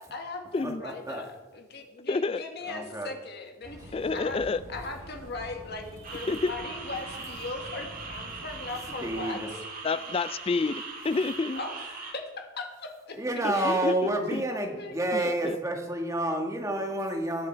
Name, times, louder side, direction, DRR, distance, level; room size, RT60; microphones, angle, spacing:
voice 1, 0.0-4.4 4.7-9.6 11.6-13.2 13.5-13.9 14.8-15.0, left 3 dB, 50° left, 3 dB, 1.7 m, -39 dB
voice 2, 0.6-1.2 2.7-3.1 9.0-9.5 13.1-17.5, right 1 dB, 15° right, 2 dB, 1.7 m, -29 dB
voice 3, 2.1-2.4 3.9-4.6 6.3-6.5 9.8-11.6 13.4-14.4 15.1-15.6, left 3 dB, 25° left, 16 dB, 0.3 m, -29 dB
sound 1, 3.6-9.2, equal, 65° right, 4.8 m, -46 dB
sound 2, 6.0-12.1, right 4 dB, 40° right, 2.0 m, -40 dB
21.0 x 7.4 x 4.5 m, 1.2 s
head